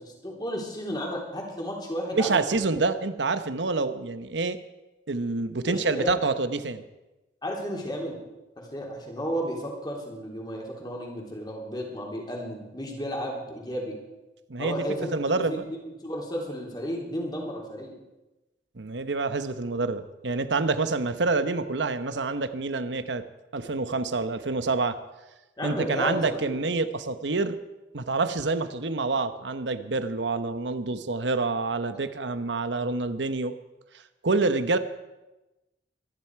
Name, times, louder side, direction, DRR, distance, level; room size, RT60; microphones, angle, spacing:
voice 1, 0.0-2.6 5.6-6.2 7.4-8.2 8.6-14.0 14.6-17.9 25.6-26.6, equal, 25° left, -1 dB, 3.2 m, -33 dB
voice 2, 2.1-4.6 5.1-6.8 14.5-14.8 15.1-15.6 18.8-23.2 23.5-25.0 25.6-27.6 27.9-33.5 33.9-34.8, right 3 dB, 85° right, 11 dB, 1.0 m, -27 dB
23.5 x 11.0 x 4.7 m, 1.0 s
head